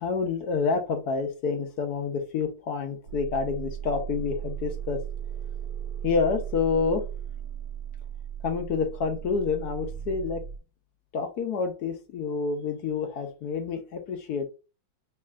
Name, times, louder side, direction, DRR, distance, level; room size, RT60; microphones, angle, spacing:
voice 1, 0.0-5.0 6.0-7.0 8.4-10.4 11.1-14.5, left 5 dB, 70° left, 5 dB, 1.0 m, -28 dB
sound 1, 3.1-10.6, right 9 dB, 70° right, 1.1 m, -36 dB
4.7 x 2.9 x 2.4 m, 0.32 s
omnidirectional pair, 2.1 m